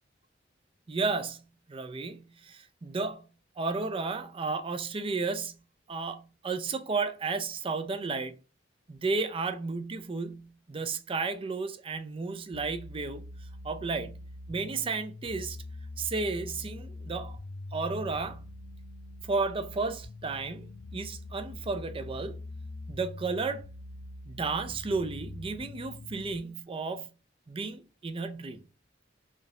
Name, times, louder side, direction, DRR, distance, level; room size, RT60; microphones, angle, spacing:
voice 1, 0.9-8.4 8.9-13.3 13.6-15.6 16.0-17.4 17.7-18.5 19.2-22.4 22.9-23.7 24.3-27.2 27.5-28.6, right 4 dB, 30° right, 0.4 m, -33 dB
sound 1, 12.5-26.4, left 2 dB, 65° left, 0.5 m, -43 dB
3.4 x 2.9 x 3.6 m
head